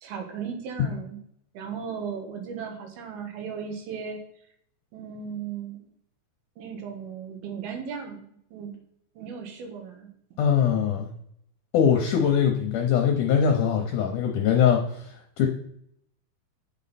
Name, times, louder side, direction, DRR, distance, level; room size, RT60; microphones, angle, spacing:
voice 1, 0.0-1.2 1.5-4.2 4.9-5.9 6.6-8.7 9.2-10.1, right 6 dB, 80° right, 4 dB, 3.2 m, -36 dB
voice 2, 10.4-11.1 11.7-15.5, left 8 dB, 70° left, 2 dB, 2.1 m, -22 dB
9.0 x 6.4 x 4.1 m, 0.70 s
omnidirectional pair, 4.4 m